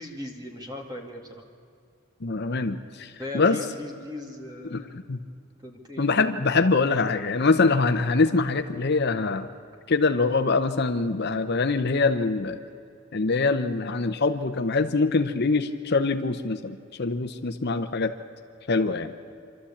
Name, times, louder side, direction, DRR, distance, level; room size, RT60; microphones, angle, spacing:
voice 1, 0.0-1.4 3.2-5.1 5.6-6.1 6.8-6.9, left 1 dB, 20° right, 2 dB, 2.3 m, -38 dB
voice 2, 2.2-3.6 4.7-5.2 6.0-9.5 9.9-12.6 13.1-18.1 18.7-19.1, left 3 dB, 50° left, 8 dB, 0.7 m, -24 dB
26.0 x 13.0 x 8.6 m, 2.5 s
head